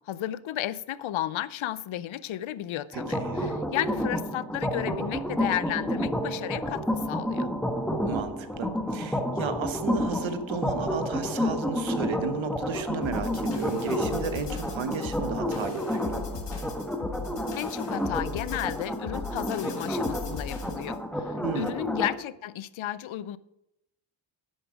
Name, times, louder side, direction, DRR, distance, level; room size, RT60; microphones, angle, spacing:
voice 1, 0.0-7.5 17.6-23.4, left 12 dB, 80° left, 0.6 m, -33 dB
sound 1, 2.9-22.2, equal, ahead, 1.2 m, -30 dB
voice 2, 2.9-3.6 8.1-16.3 21.4-21.8, right 6 dB, 75° right, 1.1 m, -34 dB
sound 2, 13.0-20.9, left 4 dB, 60° left, 1.7 m, -38 dB
9.8 x 8.3 x 4.9 m
cardioid pair, 85°, 47 cm